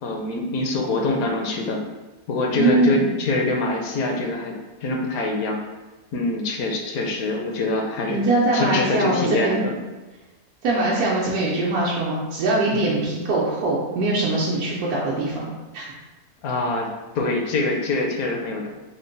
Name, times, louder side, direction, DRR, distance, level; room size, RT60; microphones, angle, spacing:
voice 1, 0.0-1.8 2.3-4.5 4.8-5.6 6.1-8.3 8.5-9.8 12.7-12.9 16.4-16.9 17.1-18.7, left 2 dB, 75° left, 2 dB, 1.0 m, -24 dB
voice 2, 2.6-3.1 8.1-9.7 10.6-15.8, right 2 dB, 80° right, -5 dB, 1.1 m, -22 dB
3.8 x 2.1 x 3.8 m, 1.2 s
omnidirectional pair, 1.6 m